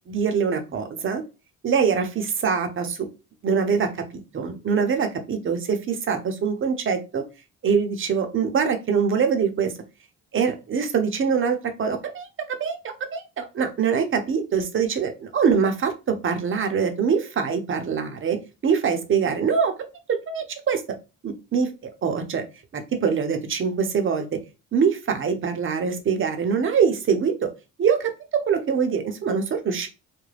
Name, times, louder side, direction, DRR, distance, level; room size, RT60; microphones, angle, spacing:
voice 1, 0.1-1.2 1.6-3.1 3.4-7.2 7.6-9.7 10.3-18.4 18.6-19.7 20.1-20.8 21.2-21.7 22.0-22.4 22.7-24.4 24.7-27.5 27.8-29.9, right 6 dB, 40° right, 6 dB, 0.6 m, -24 dB
2.4 x 2.1 x 3.2 m, 0.29 s
cardioid pair, 90°, 30 cm